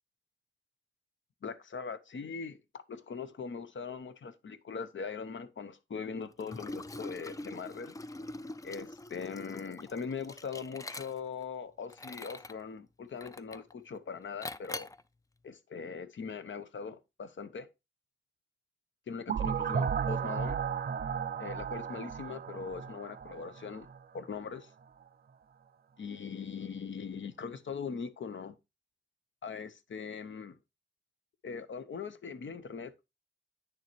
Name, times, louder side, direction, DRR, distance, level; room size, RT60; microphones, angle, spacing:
voice 1, 1.4-8.0 8.6-14.9 15.4-17.7 19.1-20.6 21.4-23.9 24.1-24.7 26.0-28.6 29.4-30.5 31.4-33.0, left 5 dB, 65° left, 0.8 m, -41 dB
Liquid, 6.4-11.4 11.9-12.6 13.2-13.7 14.4-15.0, left 2 dB, 15° left, 0.3 m, -44 dB
sound 1, 19.3-24.0, right 7 dB, 50° right, 0.4 m, -34 dB
9.3 x 6.8 x 3.0 m
wide cardioid pair, 165°, 21 cm